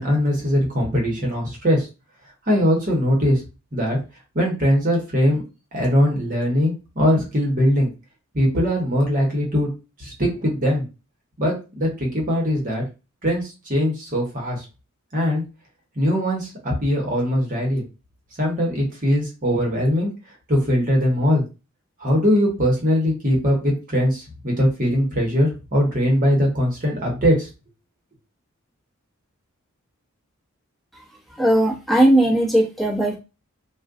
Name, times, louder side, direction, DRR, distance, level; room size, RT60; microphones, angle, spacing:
voice 1, 0.0-1.9 2.5-3.4 3.7-4.0 4.3-5.4 5.7-7.9 8.3-9.7 10.0-10.8 11.4-12.8 13.2-14.6 15.1-15.4 16.0-17.8 18.4-20.1 20.5-21.4 22.0-27.5, equal, 40° right, -1 dB, 1.0 m, -21 dB
voice 2, 31.4-33.2, right 1 dB, ahead, -5 dB, 1.0 m, -18 dB
2.4 x 2.2 x 3.6 m, 0.29 s
head